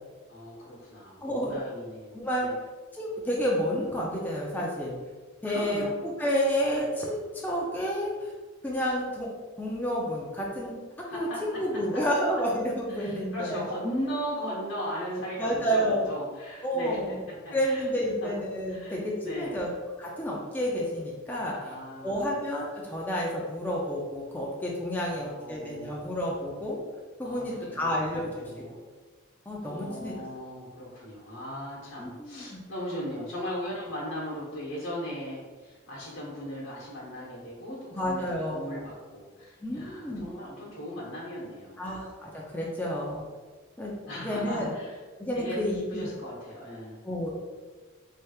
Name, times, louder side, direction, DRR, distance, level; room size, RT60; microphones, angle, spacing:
voice 1, 0.3-2.6 5.4-5.9 11.1-11.6 12.9-17.0 17.3-17.8 18.2-18.3 18.7-19.6 21.5-22.2 25.0-26.1 27.2-28.8 29.6-41.9 44.1-45.0 45.3-45.6 45.9-47.0, equal, 75° left, -8 dB, 0.9 m, -38 dB
voice 2, 1.2-1.5 2.1-2.5 2.9-5.0 5.4-8.3 8.6-9.3 9.6-10.7 11.1-13.6 15.4-16.1 16.6-17.2 17.5-19.7 20.0-21.7 22.0-26.8 27.2-28.7 29.5-30.1 32.0-32.6 37.9-38.9 39.6-40.3 41.8-43.3 43.8-44.0 44.2-44.7 45.2-46.1 47.0-47.3, equal, 10° left, -4 dB, 0.4 m, -30 dB
3.3 x 2.9 x 2.3 m, 1.3 s
head